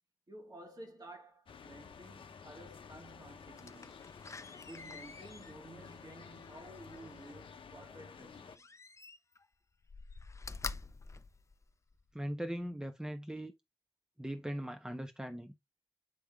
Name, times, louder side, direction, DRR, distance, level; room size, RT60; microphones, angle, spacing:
voice 1, 0.3-4.0 4.6-8.7, right 1 dB, 45° right, 2.2 m, -53 dB
sound 1, 1.5-8.6, left 6 dB, 70° left, 0.7 m, -52 dB
Slam, 3.6-7.4 8.5-9.5 9.8-12.1 12.6-12.7, left 3 dB, 35° left, 0.6 m, -47 dB
voice 2, 12.1-13.5 14.2-15.5, equal, 10° right, 1.1 m, -39 dB
9.1 x 3.5 x 3.6 m
cardioid pair, 40°, 9 cm